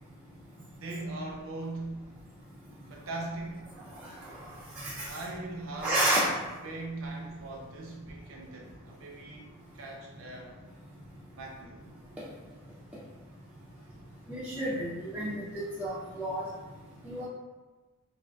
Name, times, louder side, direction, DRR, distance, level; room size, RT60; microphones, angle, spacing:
voice 1, 0.7-2.0 2.9-3.7 5.1-6.0 6.6-9.5 9.7-10.6 11.3-11.8, right 2 dB, 65° right, 0 dB, 0.6 m, -40 dB
voice 2, 5.8-6.2 14.3-15.4 15.8-16.4 17.0-17.3, right 1 dB, 5° right, -10 dB, 0.4 m, -30 dB
3.5 x 2.4 x 2.3 m, 1.2 s
head